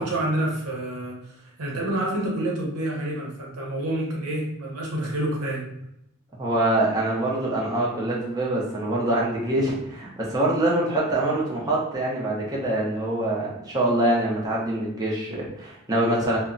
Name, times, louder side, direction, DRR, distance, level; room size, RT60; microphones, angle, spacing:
voice 1, 0.0-5.7, right 1 dB, 85° right, -2 dB, 0.8 m, -28 dB
voice 2, 6.4-16.4, right 1 dB, 15° right, -5 dB, 0.6 m, -24 dB
2.8 x 2.1 x 2.5 m, 0.80 s
head